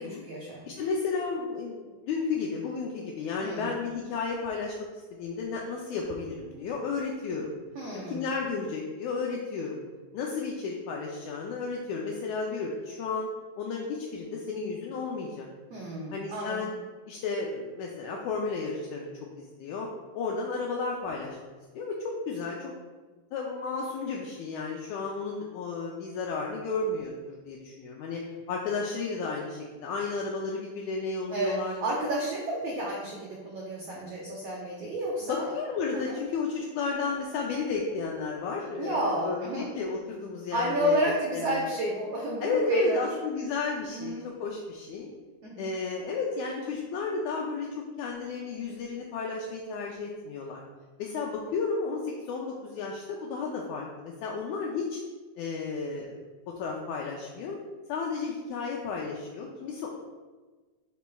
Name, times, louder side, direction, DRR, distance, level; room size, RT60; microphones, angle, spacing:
voice 1, 0.0-0.9 3.4-3.7 7.7-8.2 15.7-16.7 31.3-35.5 36.0-36.2 38.8-39.8 40.5-43.0 43.9-44.3 45.4-45.7, right 1 dB, 80° right, -4 dB, 1.4 m, -31 dB
voice 2, 0.7-7.5 8.1-9.8 10.1-13.3 13.6-15.5 16.1-16.8 17.1-19.1 19.4-19.9 20.1-21.4 21.7-22.7 23.3-28.2 28.5-31.7 35.2-41.6 42.4-44.1 44.4-45.1 45.6-47.7 48.0-50.6 51.0-55.0 55.4-56.2 56.5-57.6 57.9-59.9, left 4 dB, 80° left, -1 dB, 1.7 m, -33 dB
10.0 x 4.2 x 2.3 m, 1.3 s
omnidirectional pair, 4.0 m